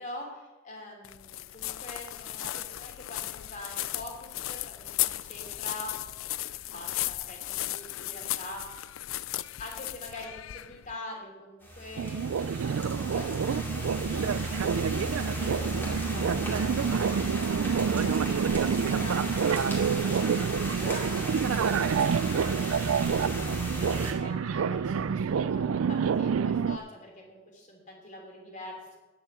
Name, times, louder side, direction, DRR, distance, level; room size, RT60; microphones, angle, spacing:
voice 1, 0.0-5.9 6.7-8.6 9.6-15.8 16.1-17.4 17.7-20.3 20.8-23.3 23.7-29.0, left 1 dB, 40° left, 0 dB, 3.0 m, -45 dB
sound 1, 1.0-10.9, left 16 dB, 75° left, 0.4 m, -35 dB
sound 2, 11.6-24.1, equal, 10° left, 2.4 m, -36 dB
sound 3, 12.0-26.8, right 6 dB, 85° right, 0.4 m, -28 dB
10.0 x 7.1 x 7.3 m, 1.2 s
head